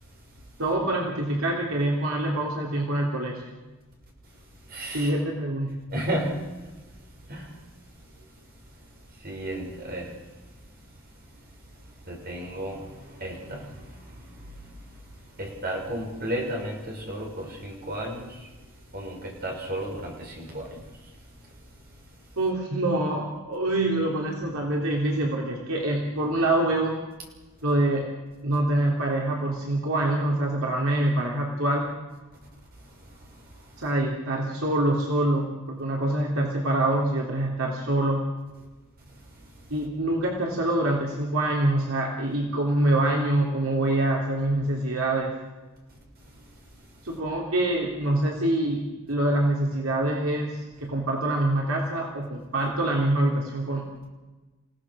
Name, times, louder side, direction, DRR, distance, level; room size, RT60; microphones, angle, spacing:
voice 1, 0.6-3.4 4.9-5.7 22.4-27.0 27.6-28.2 28.4-31.9 33.8-38.3 39.7-45.3 47.0-54.1, right 1 dB, 70° right, -1 dB, 3.6 m, -25 dB
voice 2, 4.7-5.2 5.9-6.3 7.3-7.5 9.2-10.1 12.1-14.0 15.4-18.3 18.9-20.8, right 1 dB, 45° right, 0 dB, 6.6 m, -33 dB
29.5 x 17.5 x 6.4 m, 1.2 s
head